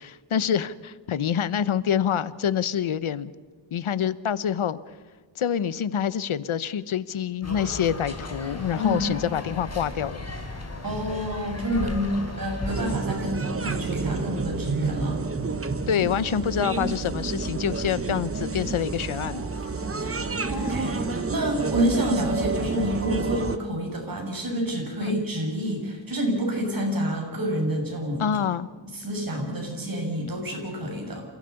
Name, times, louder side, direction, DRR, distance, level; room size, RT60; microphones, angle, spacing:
voice 1, 0.0-3.3 3.7-4.8 5.4-10.2 15.9-19.5 25.0-25.2 28.2-28.7, left 8 dB, 85° left, 16 dB, 1.0 m, -26 dB
sound 1, 7.4-12.9, left 2 dB, 30° left, 4.0 m, -35 dB
voice 2, 10.8-15.2 20.0-28.3 28.8-31.3, equal, 45° right, 1 dB, 7.4 m, -28 dB
sound 2, 12.7-23.6, right 4 dB, 30° right, 1.1 m, -29 dB
sound 3, 19.1-21.8 22.5-23.1, left 4 dB, 70° left, 4.0 m, -45 dB
28.0 x 16.5 x 7.0 m, 1.4 s
wide cardioid pair, 135°, 48 cm